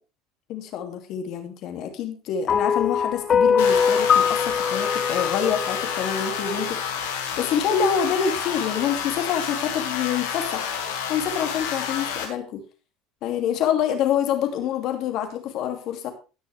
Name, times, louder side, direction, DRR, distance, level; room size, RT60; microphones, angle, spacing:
voice 1, 0.5-10.7 11.1-12.6 13.2-16.1, left 8 dB, 60° left, 5 dB, 2.7 m, -26 dB
sound 1, 2.5-6.8, left 7 dB, 35° left, 0.6 m, -22 dB
sound 2, 3.6-12.2, left 7 dB, 90° left, 2.7 m, -29 dB
17.5 x 6.4 x 3.5 m, 0.32 s
supercardioid pair, 95°, 0 cm